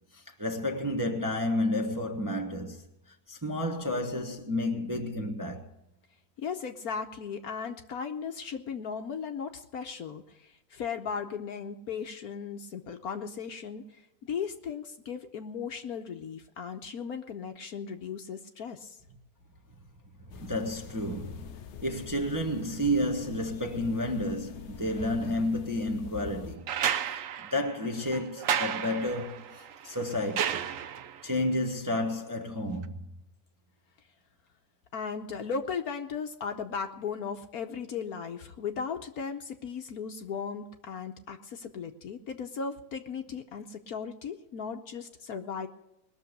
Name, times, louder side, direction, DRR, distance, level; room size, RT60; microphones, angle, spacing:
voice 1, 0.1-2.8 3.3-5.7 20.3-26.7 27.5-30.6 31.2-33.0, left 1 dB, 15° right, 0.9 m, -31 dB
voice 2, 6.4-14.0 14.3-19.0 34.9-45.7, left 6 dB, 60° left, 1.2 m, -37 dB
sound 1, 20.3-26.6, left 10 dB, 90° left, 0.6 m, -45 dB
sound 2, 26.7-31.3 32.8-32.9, right 9 dB, 60° right, 0.9 m, -32 dB
20.5 x 6.9 x 8.0 m
omnidirectional pair, 2.0 m